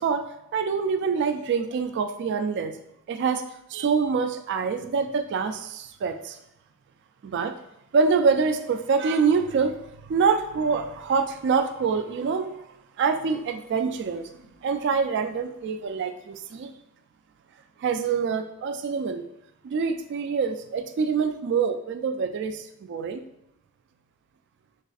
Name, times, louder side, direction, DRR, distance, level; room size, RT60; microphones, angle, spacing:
voice 1, 0.0-2.8 3.1-3.4 3.7-6.4 7.2-7.5 7.9-9.8 10.1-12.5 13.0-14.3 14.6-16.7 17.8-19.2 19.6-23.2, right 5 dB, 55° right, 7 dB, 0.3 m, -25 dB
6.5 x 2.5 x 2.4 m, 0.80 s
head